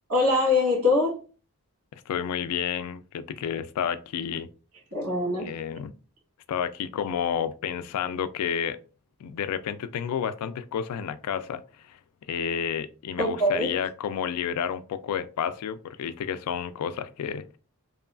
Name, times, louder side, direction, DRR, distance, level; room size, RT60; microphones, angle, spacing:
voice 1, 0.1-1.2 4.9-5.5 13.2-13.8, left 2 dB, 90° right, 1.5 m, -23 dB
voice 2, 1.9-4.5 5.4-5.9 6.5-8.8 9.2-11.6 11.9-12.0 12.3-17.6, left 8 dB, 80° left, 0.3 m, -30 dB
2.9 x 2.3 x 2.3 m
head